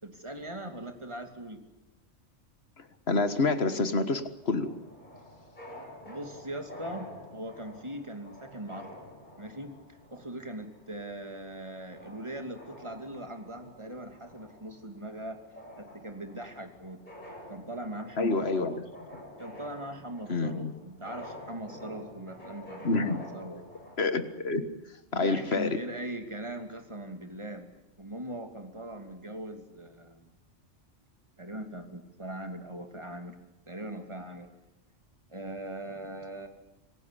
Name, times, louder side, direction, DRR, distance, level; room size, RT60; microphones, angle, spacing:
voice 1, 0.0-1.6 6.0-8.9 9.4-9.7 10.1-15.4 15.8-17.0 17.5-18.8 19.4-23.6 25.1-27.7 28.0-30.3 31.4-33.4 33.7-34.5 35.3-36.5, right 1 dB, 25° right, 6 dB, 2.7 m, -40 dB
voice 2, 2.8-4.7 18.2-18.7 20.3-20.7 22.8-23.3 24.0-24.6 25.1-25.8, left 3 dB, 55° left, 11 dB, 1.8 m, -28 dB
sound 1, 4.5-24.0, left 1 dB, 35° left, 8.1 m, -48 dB
26.5 x 18.0 x 10.0 m, 0.92 s
omnidirectional pair, 1.3 m